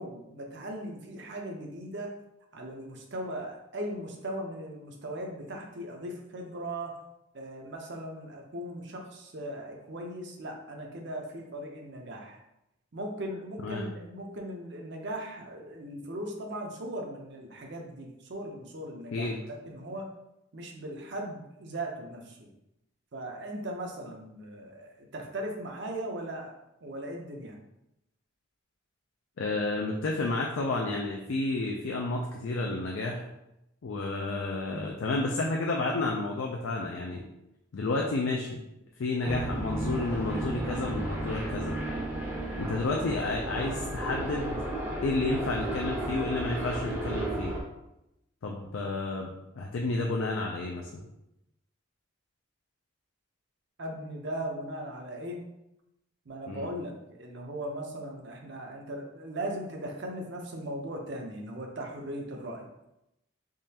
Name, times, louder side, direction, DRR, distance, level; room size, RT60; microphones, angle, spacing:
voice 1, 0.0-2.1 2.5-6.9 7.3-12.4 12.9-20.1 20.5-22.5 23.1-26.5 26.8-27.6 53.8-55.4 56.3-62.7, right 1 dB, 55° right, 2 dB, 0.6 m, -38 dB
voice 2, 19.1-19.4 29.4-33.3 33.8-37.2 37.7-38.6 39.0-41.7 42.6-44.6 45.0-47.5 48.4-51.0 56.5-56.7, left 2 dB, 70° left, 0 dB, 0.4 m, -31 dB
sound 1, 39.2-47.6, right 1 dB, 10° right, 0.6 m, -33 dB
3.7 x 3.1 x 2.8 m, 0.87 s
head